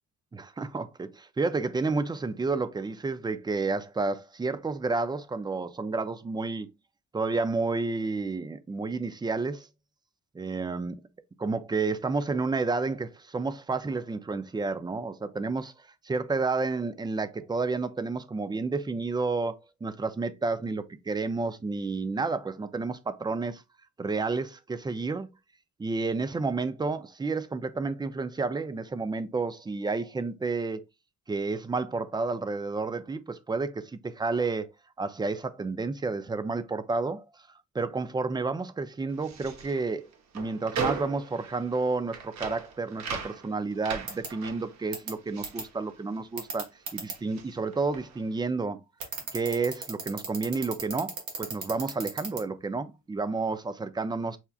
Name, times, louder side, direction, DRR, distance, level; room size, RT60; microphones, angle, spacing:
voice 1, 0.3-6.7 7.1-9.7 10.3-11.0 11.4-15.7 16.0-23.6 24.0-25.3 25.8-30.8 31.3-34.7 35.0-37.2 37.7-40.1 40.3-48.8 49.3-54.4, right 3 dB, 15° right, 0.4 m, -30 dB
sound 1, 39.1-46.6 46.9-48.3, right 5 dB, 65° right, 0.8 m, -39 dB
sound 2, 44.1-44.3 44.9-45.1 45.4-45.6 46.4-47.1 49.0-52.4, right 5 dB, 90° right, 1.4 m, -34 dB
5.6 x 2.4 x 2.3 m
cardioid pair, 90°, 30 cm